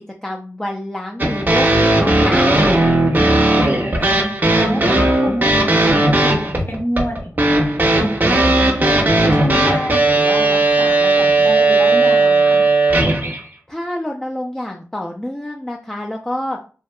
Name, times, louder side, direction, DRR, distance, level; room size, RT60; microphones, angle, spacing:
voice 1, 0.2-2.5 13.7-16.6, left 1 dB, 10° left, 1 dB, 0.3 m, -27 dB
sound 1, 1.2-13.4, right 2 dB, 35° right, 0.6 m, -15 dB
voice 2, 3.3-12.7, equal, 40° left, 2 dB, 0.8 m, -28 dB
2.6 x 2.3 x 2.2 m, 0.38 s
cardioid pair, 45°, 6 cm